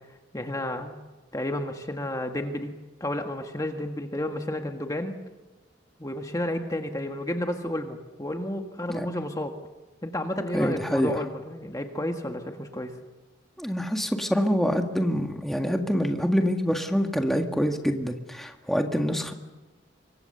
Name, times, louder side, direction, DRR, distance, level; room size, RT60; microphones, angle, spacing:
voice 1, 0.3-0.9 1.3-2.7 3.0-5.2 6.0-9.5 10.0-13.0, left 1 dB, 20° left, 4 dB, 1.7 m, -31 dB
voice 2, 10.5-11.2 13.6-19.3, equal, ahead, 3 dB, 1.8 m, -26 dB
27.0 x 24.5 x 6.9 m, 1.1 s
head